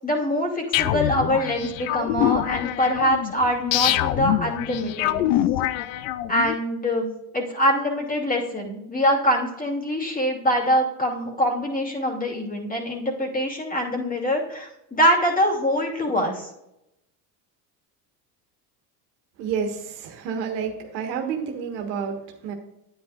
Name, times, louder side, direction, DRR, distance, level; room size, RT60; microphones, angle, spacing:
voice 1, 0.0-5.2 6.3-7.1 7.3-16.5, equal, 15° left, 0 dB, 2.6 m, -24 dB
sound 1, 0.7-6.5, left 14 dB, 85° left, 0.6 m, -25 dB
voice 2, 19.4-22.6, right 6 dB, 85° right, 3 dB, 1.6 m, -29 dB
9.8 x 9.6 x 2.5 m, 0.86 s
supercardioid pair, 85°, 49 cm